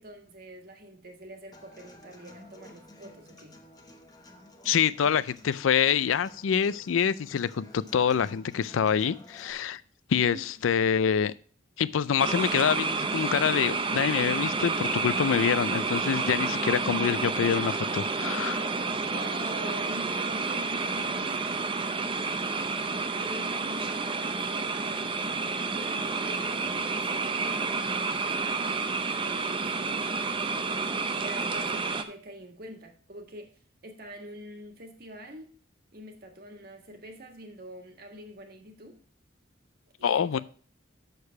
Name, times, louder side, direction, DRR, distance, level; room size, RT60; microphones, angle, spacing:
voice 1, 0.0-3.6 10.1-10.5 19.1-22.2 22.5-25.4 25.7-28.9 29.2-30.2 31.2-33.5 33.8-35.5 35.9-39.0 40.0-40.4, right 1 dB, 50° right, 4 dB, 1.6 m, -45 dB
Human voice / Acoustic guitar, 1.5-9.5, left 1 dB, 20° left, 1.0 m, -52 dB
voice 2, 4.6-9.8 10.1-11.3 11.8-18.7 40.0-40.4, left 7 dB, 90° left, 17 dB, 0.4 m, -26 dB
sound 1, 12.2-32.0, right 4 dB, 25° right, 0.6 m, -30 dB
6.6 x 6.6 x 5.6 m, 0.43 s
head